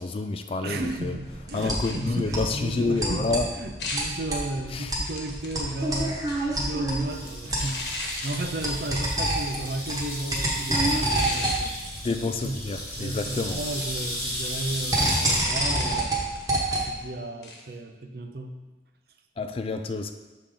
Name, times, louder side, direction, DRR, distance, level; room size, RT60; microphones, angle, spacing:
voice 1, 0.0-1.2 1.5-3.5 4.7-4.9 12.0-13.6 19.4-20.1, left 3 dB, 30° left, 8 dB, 0.3 m, -28 dB
voice 2, 0.6-6.2 6.5-12.1 12.4-12.6 13.0-16.3 16.7-18.6, right 2 dB, 60° right, 6 dB, 0.6 m, -34 dB
sound 1, 0.8-17.0, right 1 dB, 20° right, 1.1 m, -29 dB
sound 2, 1.8-2.3 3.8-4.2 5.0-6.6 7.6-8.5 9.5-9.7 10.9-11.7 15.3-16.5 17.4-17.6, left 2 dB, 65° left, 1.2 m, -36 dB
sound 3, 7.1-15.4, left 1 dB, 15° left, 1.2 m, -36 dB
7.1 x 3.7 x 5.0 m, 1.2 s
head